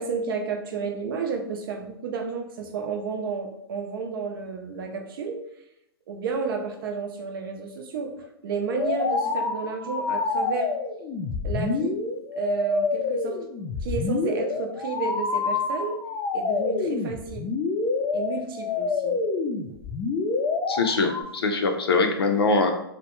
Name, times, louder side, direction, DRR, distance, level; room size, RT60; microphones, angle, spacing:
voice 1, 0.0-5.4 6.1-10.7 11.4-11.9 12.3-13.4 13.8-16.0 16.3-17.5 18.1-19.2 19.7-19.8, right 5 dB, 65° right, 4 dB, 0.5 m, -31 dB
sound 1, 8.7-21.2, left 4 dB, 25° left, 0.3 m, -27 dB
voice 2, 20.7-22.7, left 3 dB, 85° left, 5 dB, 0.5 m, -22 dB
2.3 x 2.1 x 2.9 m, 0.79 s
hypercardioid pair, 120°, 13 cm